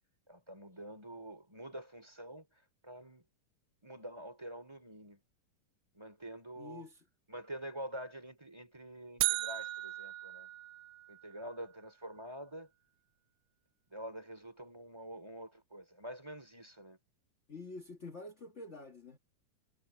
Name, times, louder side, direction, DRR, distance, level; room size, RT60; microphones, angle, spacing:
voice 1, 0.3-3.3 3.8-5.2 5.9-6.9 7.3-10.5 11.1-12.7 13.9-17.0, right 1 dB, 10° right, 4.0 m, -47 dB
voice 2, 6.6-6.9 17.5-19.2, left 3 dB, 55° left, 0.8 m, -47 dB
sound 1, 9.2-11.3, right 20 dB, 90° right, 2.3 m, -36 dB
omnidirectional pair, 3.7 m